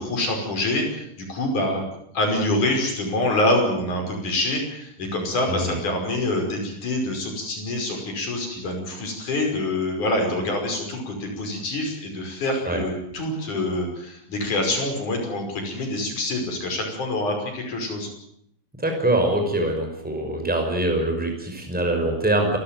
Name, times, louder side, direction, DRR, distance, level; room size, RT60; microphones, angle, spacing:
voice 1, 0.0-1.8 2.1-18.1, left 1 dB, 40° left, 3 dB, 6.7 m, -26 dB
voice 2, 18.8-22.6, right 1 dB, ahead, 3 dB, 5.2 m, -23 dB
28.0 x 15.5 x 9.2 m, 0.73 s
omnidirectional pair, 5.4 m